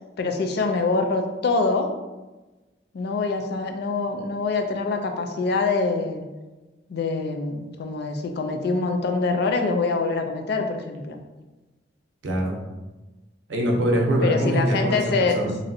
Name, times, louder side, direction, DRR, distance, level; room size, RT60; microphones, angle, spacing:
voice 1, 0.2-1.9 2.9-6.3 6.9-11.2 14.2-15.3, left 3 dB, 60° left, 5 dB, 0.4 m, -24 dB
voice 2, 12.2-12.6 13.5-15.6, right 1 dB, 85° right, 0 dB, 0.6 m, -23 dB
3.0 x 2.6 x 2.6 m, 1.1 s
head